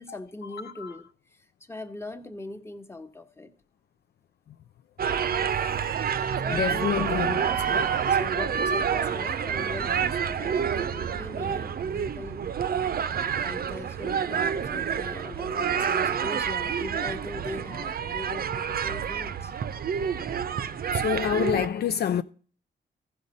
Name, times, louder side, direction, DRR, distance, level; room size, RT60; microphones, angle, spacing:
voice 1, 0.0-3.5 6.4-19.5, left 2 dB, 15° left, 1.1 m, -40 dB
voice 2, 0.5-0.9 6.5-7.4 20.9-22.2, left 8 dB, 70° left, 0.5 m, -27 dB
sound 1, 5.0-21.7, right 7 dB, 60° right, 0.6 m, -28 dB
14.5 x 5.1 x 5.4 m
cardioid pair, 80°, 18 cm